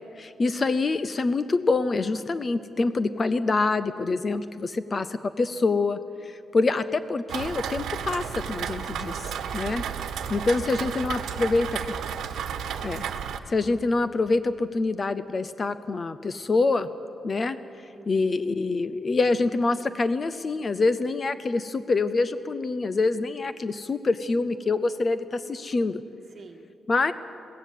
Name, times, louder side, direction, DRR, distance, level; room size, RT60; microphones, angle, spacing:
voice 1, 0.2-9.8 10.3-11.7 12.8-13.1 13.5-16.9 17.2-17.6 18.1-26.0 26.9-27.1, left 3 dB, 25° left, 13 dB, 0.5 m, -26 dB
Rain, 7.3-13.4, right 8 dB, 85° right, 1.2 m, -32 dB
voice 2, 9.6-10.0 10.8-10.9 11.4-12.5 17.9-18.3 26.3-26.7, right 4 dB, 35° right, 4 dB, 1.7 m, -49 dB
21.5 x 16.5 x 8.4 m, 2.7 s
wide cardioid pair, 175°, 0 cm